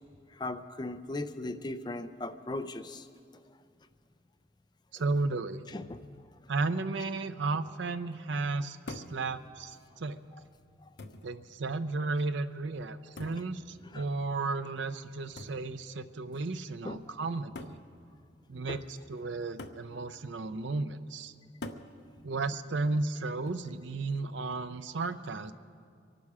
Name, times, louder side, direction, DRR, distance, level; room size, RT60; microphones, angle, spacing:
voice 1, 0.3-3.1 3.3-3.4 5.7-6.0 10.3-10.4 10.8-10.9 13.2-13.3 13.8-14.1 16.8-17.0 18.7-18.8, left 2 dB, 25° left, 9 dB, 0.5 m, -38 dB
voice 2, 4.9-5.7 6.5-10.2 11.2-17.8 18.5-21.3 22.2-25.5, right 3 dB, 75° right, 11 dB, 0.6 m, -34 dB
sound 1, 8.9-9.2 10.2-10.3 11.0-11.4 13.2-13.5 15.4-15.7 16.7-16.8 17.6-17.9 19.6-19.9 21.6-21.9 23.5-23.9, left 2 dB, 65° left, 0.8 m, -44 dB
24.5 x 12.0 x 4.9 m, 2.3 s
head